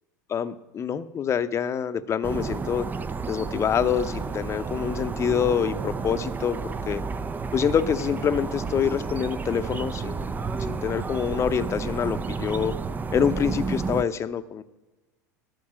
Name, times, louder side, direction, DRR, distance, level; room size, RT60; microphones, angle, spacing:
voice 1, 0.3-2.9 3.3-7.0 7.5-10.4 10.7-12.7 13.1-14.6, left 8 dB, 30° left, 12 dB, 0.7 m, -26 dB
sound 1, 2.2-14.0, right 4 dB, 20° right, 0.5 m, -31 dB
13.0 x 4.6 x 7.5 m, 1.1 s
hypercardioid pair, 80°, 10 cm